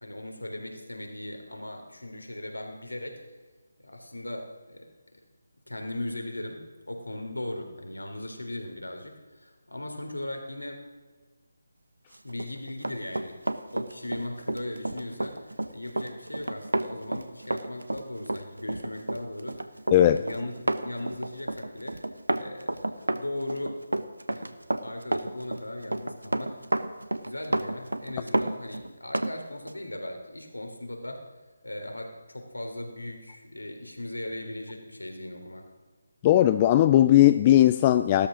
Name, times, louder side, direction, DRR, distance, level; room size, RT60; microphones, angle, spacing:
voice 1, 0.0-3.2 3.8-4.9 5.7-10.8 12.2-13.4 13.7-19.6 20.0-22.0 22.3-23.8 24.3-24.5 24.8-26.6 27.2-31.2 31.6-35.7, left 1 dB, 85° left, 3 dB, 3.5 m, -38 dB
Run, 12.3-29.3 29.7-29.8, right 1 dB, 80° right, 1.1 m, -31 dB
voice 2, 19.9-20.2 36.2-38.3, left 13 dB, 25° left, 11 dB, 0.4 m, -18 dB
16.5 x 13.0 x 6.2 m, 1.4 s
figure-of-eight pair, 150°, 0 cm